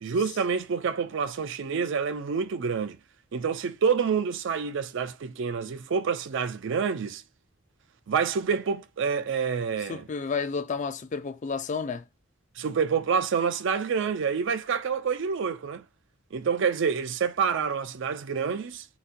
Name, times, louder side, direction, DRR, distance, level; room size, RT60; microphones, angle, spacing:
voice 1, 0.0-3.0 3.3-7.2 8.1-10.1 12.6-15.8 16.3-18.8, right 6 dB, 65° right, 0.4 m, -27 dB
voice 2, 9.9-12.0, left 5 dB, 35° left, 0.4 m, -31 dB
4.0 x 2.2 x 2.5 m
head